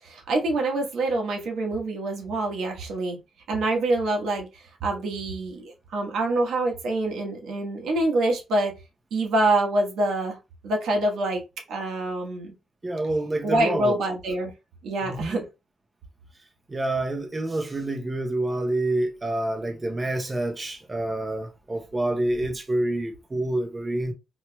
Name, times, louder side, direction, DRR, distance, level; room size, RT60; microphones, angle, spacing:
voice 1, 0.0-3.2 3.5-8.7 9.1-10.4 10.6-11.4 11.7-12.5 13.4-14.5 14.8-15.4, right 2 dB, 85° right, 1.2 m, -26 dB
voice 2, 12.8-13.9 15.0-15.4 16.7-24.1, right 1 dB, 20° right, 0.7 m, -27 dB
4.4 x 2.9 x 2.2 m
cardioid pair, 115°, 0 cm